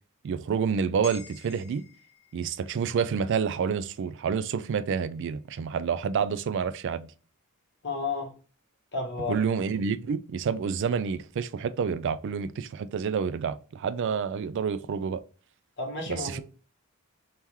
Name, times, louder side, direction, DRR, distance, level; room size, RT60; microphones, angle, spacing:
voice 1, 0.2-1.8 2.3-7.1 9.3-15.2 16.1-16.4, right 6 dB, 55° right, 0.3 m, -28 dB
sound 1, 1.0-5.5 5.9-6.1, left 6 dB, 80° left, 1.0 m, -52 dB
voice 2, 7.8-8.3 8.9-9.4 15.8-16.4, left 3 dB, 55° left, 1.2 m, -32 dB
3.5 x 2.9 x 3.0 m
head